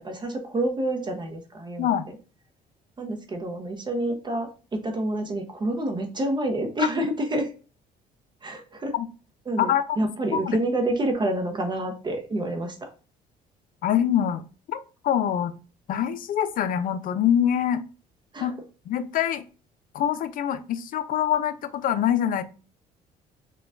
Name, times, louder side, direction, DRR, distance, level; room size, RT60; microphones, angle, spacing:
voice 1, 0.0-1.9 3.0-7.5 8.4-8.9 9.5-12.9 18.3-18.6, right 1 dB, 25° right, 4 dB, 0.6 m, -28 dB
voice 2, 13.8-14.4 14.7-15.5 15.9-17.8 18.4-18.5 18.9-19.4 19.9-22.4, left 10 dB, 55° left, 11 dB, 0.4 m, -24 dB
4.1 x 2.3 x 2.3 m, 0.35 s
cardioid pair, 110°, 17 cm